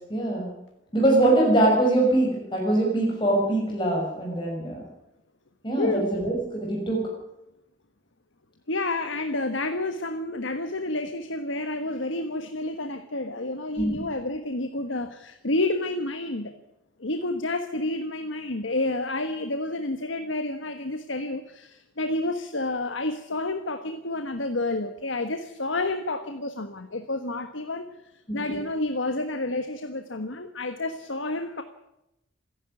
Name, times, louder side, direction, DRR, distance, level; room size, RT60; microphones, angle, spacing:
voice 1, 0.1-0.5 0.9-4.8 5.6-7.1 13.8-14.0 28.3-28.4, right 1 dB, 25° left, -2 dB, 6.0 m, -23 dB
voice 2, 8.7-16.5 17.0-27.9 28.3-31.6, left 2 dB, 75° left, 8 dB, 1.4 m, -29 dB
27.0 x 11.0 x 9.7 m, 0.88 s
head